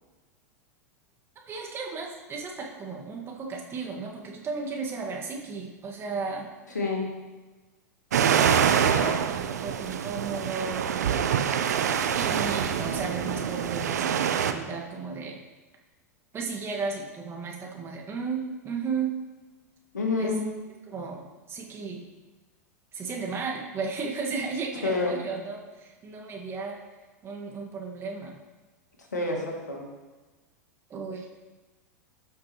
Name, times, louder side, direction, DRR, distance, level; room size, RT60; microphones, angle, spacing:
voice 1, 1.5-6.5 8.8-11.3 12.1-15.4 16.3-19.1 20.1-20.4 20.9-22.0 22.9-26.8 27.2-28.4 30.9-31.4, right 4 dB, 25° right, -1 dB, 1.8 m, -34 dB
voice 2, 6.7-7.1 19.9-20.5 24.8-25.2 29.1-29.9, left 3 dB, 85° left, 0 dB, 2.0 m, -28 dB
sound 1, 8.1-14.5, right 8 dB, 75° right, 0.6 m, -25 dB
13.5 x 5.9 x 3.1 m, 1.2 s
hypercardioid pair, 95°, 9 cm